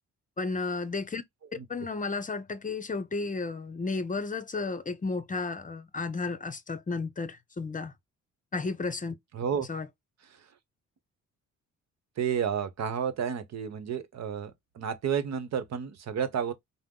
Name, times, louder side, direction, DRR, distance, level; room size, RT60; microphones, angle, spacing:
voice 1, 0.4-1.2 1.7-7.9 8.5-9.2 9.7-9.9, left 3 dB, 25° left, 0.7 m, -33 dB
voice 2, 9.3-9.7 12.2-16.5, right 7 dB, 60° right, 1.0 m, -31 dB
5.6 x 2.0 x 3.8 m
cardioid pair, 90°, 30 cm